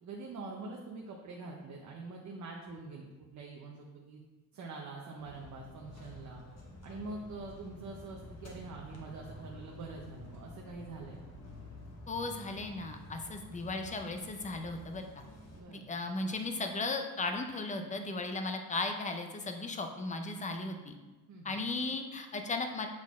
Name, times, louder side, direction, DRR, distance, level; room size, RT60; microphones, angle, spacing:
voice 1, 0.0-4.2 4.5-6.4 6.8-11.4 15.5-15.9 21.3-21.6, right 3 dB, 50° right, 0 dB, 0.8 m, -45 dB
sound 1, 5.2-15.6, left 1 dB, 45° left, 1.2 m, -50 dB
voice 2, 12.1-15.0 15.7-20.9 21.4-22.9, left 3 dB, 20° left, 5 dB, 0.6 m, -36 dB
7.5 x 4.1 x 3.6 m, 1.2 s
cardioid pair, 145°, 36 cm